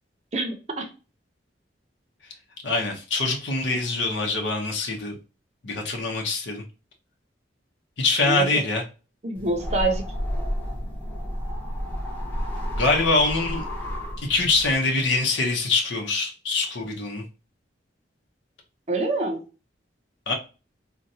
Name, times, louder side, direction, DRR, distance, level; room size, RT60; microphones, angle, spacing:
voice 1, 0.3-0.9 8.3-8.6 9.2-10.1 18.9-19.4, right 2 dB, 35° right, 0.6 m, -26 dB
voice 2, 2.6-5.1 5.6-6.6 8.0-8.8 12.8-13.6 14.2-17.2 20.3-20.4, left 3 dB, 80° left, 0.7 m, -24 dB
sound 1, 9.3-14.7, equal, 10° left, 0.9 m, -31 dB
3.9 x 2.2 x 2.7 m
head